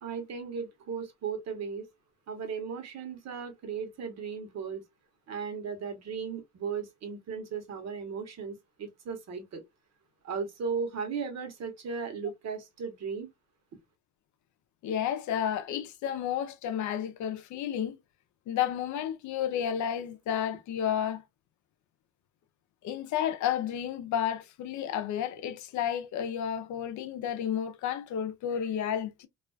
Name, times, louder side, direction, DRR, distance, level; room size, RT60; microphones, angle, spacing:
voice 1, 0.0-1.9 2.3-4.8 5.3-9.6 10.2-13.3, right 6 dB, 60° right, 1.0 m, -36 dB
voice 2, 14.8-18.0 18.5-21.2 22.8-29.3, left 9 dB, 75° left, 0.5 m, -31 dB
2.4 x 2.2 x 2.3 m
cardioid pair, 90°, 30 cm